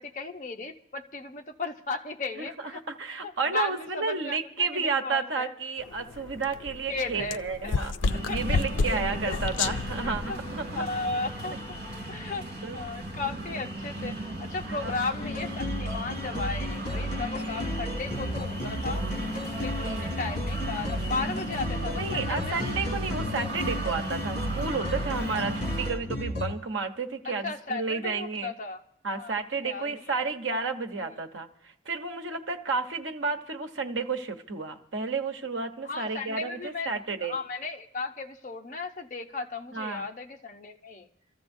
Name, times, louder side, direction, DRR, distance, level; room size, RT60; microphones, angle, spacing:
voice 1, 0.0-2.8 3.2-5.5 6.9-7.7 8.3-8.4 8.9-9.4 10.0-10.4 10.7-11.8 12.1-12.5 12.7-19.1 19.4-22.6 27.2-28.8 29.1-30.3 30.9-31.2 35.8-41.1, left 3 dB, 40° left, 3 dB, 0.9 m, -35 dB
voice 2, 2.4-7.9 8.3-10.8 12.2-12.3 12.6-12.8 14.7-14.9 17.5-17.8 19.8-20.1 21.9-28.5 29.0-37.4 39.7-40.0, right 4 dB, 85° right, 7 dB, 1.1 m, -32 dB
sound 1, 5.8-10.8, left 4 dB, 85° left, 0.4 m, -31 dB
sound 2, 8.0-25.9, right 1 dB, 55° right, 2.6 m, -36 dB
sound 3, 15.2-26.5, left 1 dB, 55° left, 2.4 m, -33 dB
26.0 x 14.5 x 2.7 m, 0.72 s
head